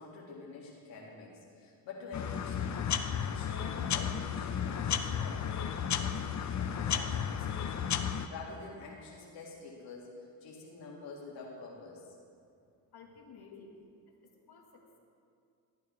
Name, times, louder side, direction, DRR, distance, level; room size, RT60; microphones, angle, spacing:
voice 1, 0.0-2.8 3.2-6.2 6.6-8.0 8.3-10.1 10.4-12.1 13.5-13.6, left 3 dB, 85° left, -5 dB, 2.0 m, -47 dB
sound 1, 2.1-8.3, left 8 dB, 40° left, 0.6 m, -33 dB
voice 2, 12.9-13.7 14.1-15.0, left 5 dB, 60° left, 0 dB, 1.6 m, -55 dB
13.5 x 8.8 x 3.1 m, 2.3 s
cardioid pair, 70°, 44 cm